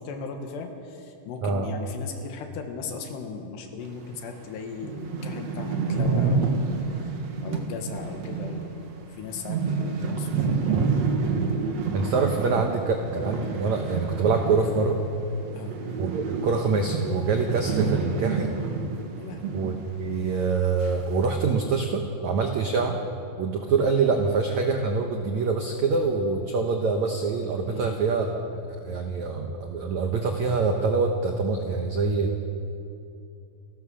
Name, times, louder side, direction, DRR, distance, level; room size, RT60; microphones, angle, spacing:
voice 1, 0.0-7.1 7.4-8.8 9.1-10.8 15.5-15.8 19.2-19.6 27.7-28.0, left 5 dB, 75° left, 4 dB, 3.8 m, -37 dB
sound 1, 4.1-4.2 4.6-4.7 4.8-15.1 15.3-19.8 20.1-20.2 20.8-21.3, right 4 dB, 55° right, 2.1 m, -28 dB
voice 2, 11.9-15.0 16.0-18.5 19.5-23.0 23.4-32.3, right 4 dB, 75° right, 3 dB, 1.7 m, -25 dB
29.5 x 14.0 x 6.4 m, 2.7 s
omnidirectional pair, 5.0 m